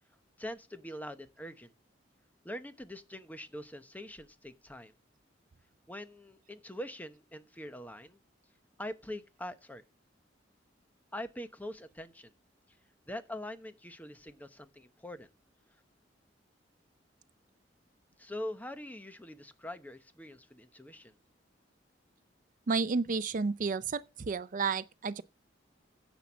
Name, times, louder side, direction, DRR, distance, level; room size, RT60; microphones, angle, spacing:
voice 1, 0.4-1.7 2.4-4.9 5.9-8.2 8.8-9.8 11.1-12.3 12.7-12.8 13.1-15.3 15.7-15.8 18.2-21.2, left 1 dB, 10° left, 0.8 m, -43 dB
voice 2, 22.7-25.2, right 4 dB, 45° right, 0.5 m, -31 dB
10.5 x 7.1 x 6.1 m
head